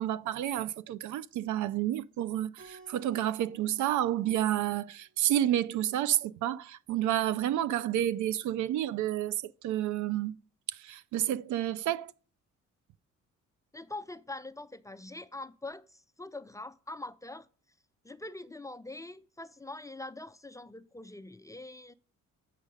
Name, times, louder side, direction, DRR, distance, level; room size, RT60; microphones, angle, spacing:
voice 1, 0.0-9.4 9.6-10.4 10.8-12.1, right 12 dB, 75° right, 0.5 m, -30 dB
Keyboard (musical), 2.6-5.2, right 3 dB, 45° right, 1.4 m, -57 dB
voice 2, 13.7-17.5 18.0-21.9, left 2 dB, 10° left, 0.3 m, -43 dB
8.3 x 5.0 x 5.3 m
cardioid pair, 90°, 30 cm